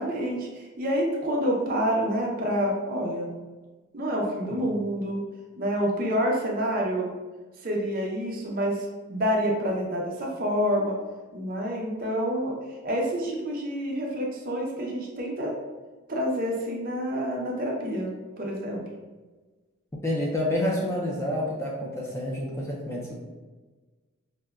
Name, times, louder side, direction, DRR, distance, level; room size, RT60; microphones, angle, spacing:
voice 1, 0.0-3.3 3.9-5.2 5.6-7.1 7.6-10.9 11.3-12.5 12.8-15.5 16.1-18.1 18.4-18.8, equal, 40° right, -1 dB, 0.5 m, -28 dB
voice 2, 20.0-23.1, left 1 dB, 10° left, -3 dB, 0.3 m, -28 dB
4.9 x 2.1 x 2.3 m, 1.3 s
head